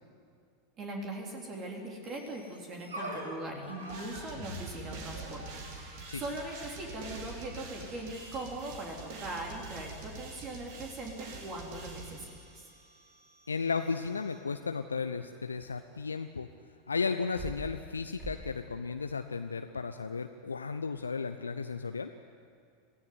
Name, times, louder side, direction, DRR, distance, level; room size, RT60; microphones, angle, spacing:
voice 1, 0.8-12.6, right 2 dB, 30° right, 0 dB, 3.5 m, -40 dB
sound 1, 2.0-14.5, equal, 75° right, 6.2 m, -48 dB
sound 2, 3.9-12.7, right 3 dB, 50° right, 3.7 m, -46 dB
voice 2, 13.5-16.5 16.9-22.1, left 5 dB, 75° left, 7 dB, 0.7 m, -34 dB
sound 3, 15.8-15.9 17.1-17.9 18.2-18.4, right 2 dB, 10° right, 5.3 m, -42 dB
26.0 x 16.0 x 9.6 m, 2.3 s
figure-of-eight pair, 85°, 0 cm